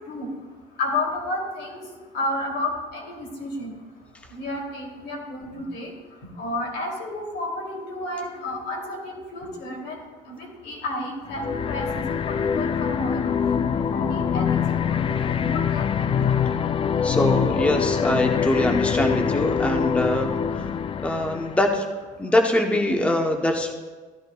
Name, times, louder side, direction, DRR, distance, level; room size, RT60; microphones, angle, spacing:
voice 1, 0.8-1.8 2.1-3.7 4.3-5.9 6.4-10.0 10.3-13.2 13.7-16.4 20.3-20.4, left 2 dB, 80° left, -1 dB, 2.8 m, -31 dB
sound 1, 11.3-21.8, left 7 dB, 30° left, 0.3 m, -24 dB
voice 2, 17.0-20.3 21.0-21.8 22.2-23.7, left 1 dB, 5° left, 3 dB, 0.8 m, -23 dB
14.5 x 10.5 x 2.3 m, 1.4 s
cardioid pair, 110°, 17 cm